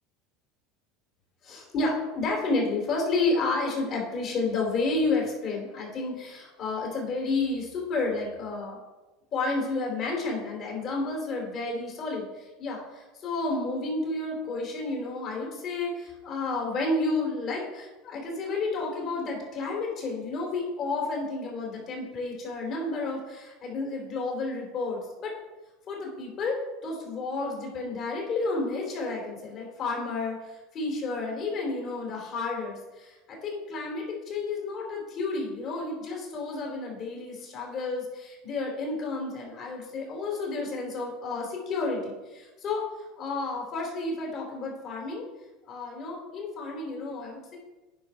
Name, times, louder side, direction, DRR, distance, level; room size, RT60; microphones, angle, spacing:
voice 1, 1.4-8.8 9.3-25.3 25.9-45.3 45.6-47.6, left 3 dB, 40° left, -1 dB, 3.4 m, -31 dB
9.4 x 5.1 x 5.5 m, 1.1 s
supercardioid pair, 130°, 0 cm